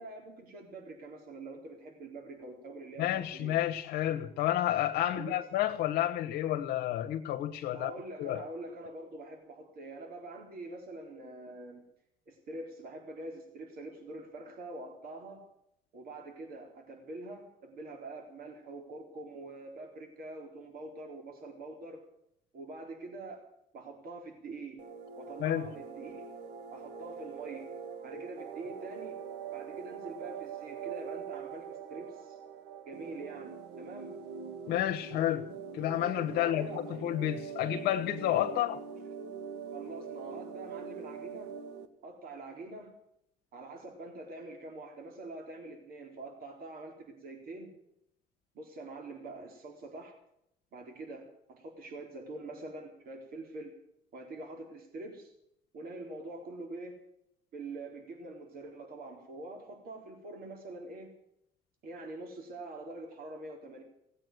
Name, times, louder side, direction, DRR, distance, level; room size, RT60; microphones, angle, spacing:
voice 1, 0.0-3.7 5.1-5.4 7.7-11.8 12.3-15.4 15.9-22.0 22.5-23.4 23.7-24.8 25.2-26.2 26.7-27.7 28.0-29.2 29.5-32.4 32.9-34.2 36.3-36.9 38.5-38.6 39.7-41.5 42.0-42.9 43.5-47.7 48.5-50.1 50.7-53.7 54.1-55.3 55.7-57.0 57.5-61.1 61.8-63.8, right 2 dB, 60° right, 4.2 m, -45 dB
voice 2, 3.0-7.9 8.2-8.5 25.4-25.7 34.7-38.8, left 12 dB, 85° left, 1.2 m, -30 dB
sound 1, 24.8-41.9, right 6 dB, 80° right, 1.8 m, -43 dB
17.5 x 8.8 x 9.3 m
cardioid pair, 110°, 17 cm